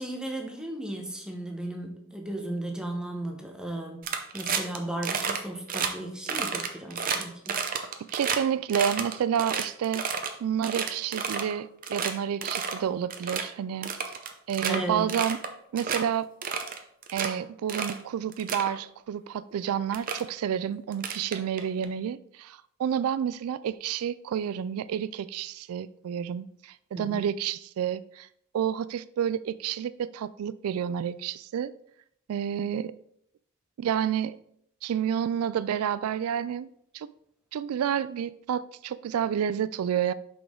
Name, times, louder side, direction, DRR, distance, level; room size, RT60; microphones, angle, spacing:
voice 1, 0.0-7.6 14.7-15.1 26.9-27.3, right 1 dB, 5° right, 1 dB, 0.9 m, -35 dB
sound 1, 4.0-4.8 5.0-5.4 5.7-5.9 6.3-8.4 8.7-10.3 10.6-11.5 11.8-12.1 12.4-12.8 13.1-13.4 13.8-14.8 15.1-15.5 15.8-16.0 16.4-17.3 17.7-18.0 18.3-18.7 19.5-19.6 19.9-20.2 20.9-21.8, right 6 dB, 40° right, 0.6 m, -30 dB
voice 2, 8.1-10.0 10.4-13.9 14.5-15.4 15.7-16.3 17.1-28.3 28.5-31.7 32.3-32.9 33.8-34.4 34.8-36.7 36.9-37.1 37.5-40.1, right 8 dB, 75° right, 16 dB, 0.3 m, -29 dB
6.0 x 5.1 x 3.7 m, 0.69 s
head